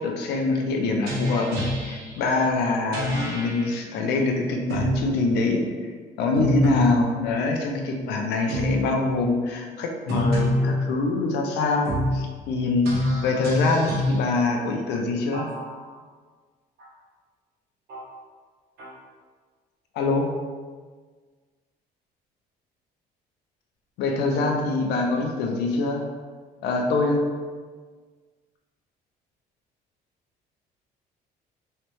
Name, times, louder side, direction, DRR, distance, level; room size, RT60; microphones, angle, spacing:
voice 1, 0.0-5.9 6.2-15.5 19.9-20.3 24.0-26.0 26.6-27.2, left 3 dB, 75° left, 2 dB, 0.5 m, -24 dB
sound 1, 1.1-2.2 2.9-3.7 4.7-5.1 6.4-7.0 8.5-8.9 10.1-10.9 11.9-12.2 12.9-14.2 15.3-16.0 16.8-16.9 17.9-18.1 18.8-18.9, left 1 dB, 70° right, 1.0 m, -26 dB
3.1 x 3.1 x 3.0 m, 1.5 s
cardioid pair, 110°, 17 cm